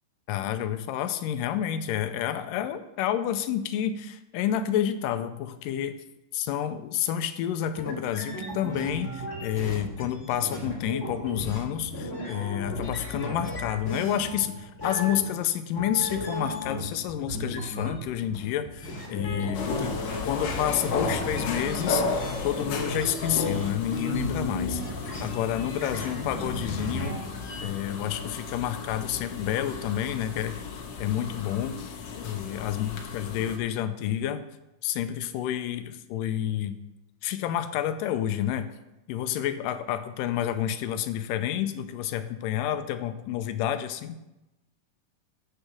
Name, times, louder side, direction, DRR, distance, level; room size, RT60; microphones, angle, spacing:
voice 1, 0.3-6.0 6.3-27.2 27.6-34.5 34.8-36.8 37.2-38.7 39.1-44.2, left 10 dB, 85° left, 10 dB, 2.2 m, -29 dB
sound 1, 7.7-15.5 15.8-27.6, left 1 dB, 30° left, 1.6 m, -35 dB
sound 2, 19.5-33.6, left 4 dB, 65° left, 1.5 m, -34 dB
8.4 x 6.5 x 6.1 m, 0.94 s
omnidirectional pair, 3.9 m